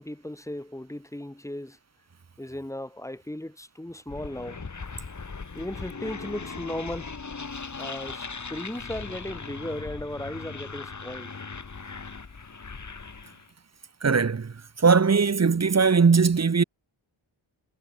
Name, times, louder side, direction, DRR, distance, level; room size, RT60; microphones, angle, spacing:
voice 1, 0.0-1.8 2.4-4.6 5.5-7.2 7.8-11.3, left 1 dB, 5° left, 3.2 m, -36 dB
sound 1, 4.1-13.5, left 4 dB, 35° left, 7.1 m, -39 dB
voice 2, 14.0-16.6, right 5 dB, 30° right, 1.5 m, -20 dB
wide cardioid pair, 150°, 49 cm